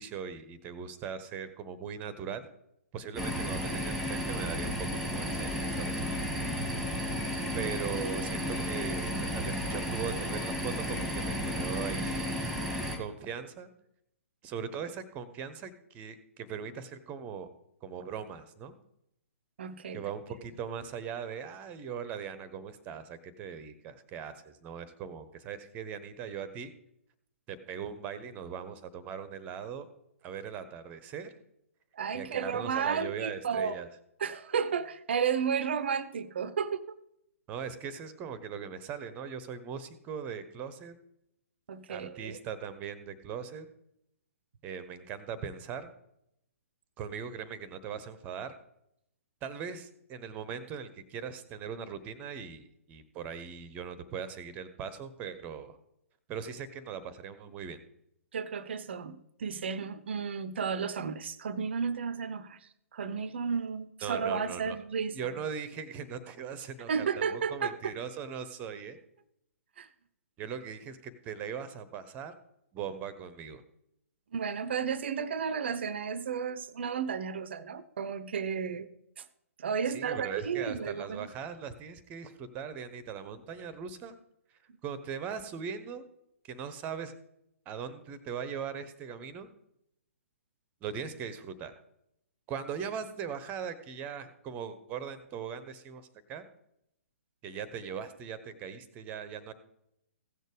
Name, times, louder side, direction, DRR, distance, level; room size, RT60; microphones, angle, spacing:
voice 1, 0.0-2.5 2.9-6.0 7.5-12.5 13.0-13.7 14.4-17.5 17.8-18.8 19.9-26.7 27.5-29.9 30.2-31.3 32.1-33.9 37.5-41.0 41.9-43.7 44.6-45.9 47.0-48.5 49.4-55.8 56.3-57.8 64.0-64.8 65.1-69.0 70.4-72.3 72.7-73.6 79.9-84.2 84.8-86.1 86.4-87.1 87.7-89.5 90.8-91.7 92.5-96.5 97.4-99.5, right 7 dB, 20° right, 14 dB, 0.9 m, -40 dB
sound 1, 3.2-13.0, equal, ahead, 1.6 m, -33 dB
voice 2, 19.6-20.0 31.9-33.9 34.2-36.8 41.7-42.4 58.3-62.6 62.9-65.2 66.9-67.9 69.8-69.9 74.3-78.9 79.2-79.3 79.6-81.3, right 6 dB, 50° right, 17 dB, 0.6 m, -33 dB
16.0 x 6.6 x 5.0 m, 0.79 s
figure-of-eight pair, 125°, 8 cm